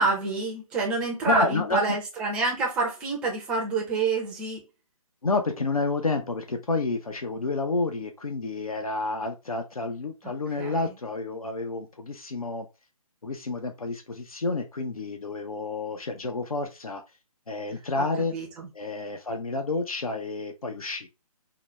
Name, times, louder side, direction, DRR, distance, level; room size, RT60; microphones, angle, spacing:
voice 1, 0.0-4.6 10.2-10.9 18.0-18.1 18.3-18.7, right 3 dB, 5° right, 0.5 m, -27 dB
voice 2, 1.2-2.0 5.2-12.7 13.2-17.0 17.5-18.3 18.7-21.1, left 3 dB, 70° left, 0.7 m, -29 dB
3.9 x 2.1 x 3.2 m
figure-of-eight pair, 140°, 19 cm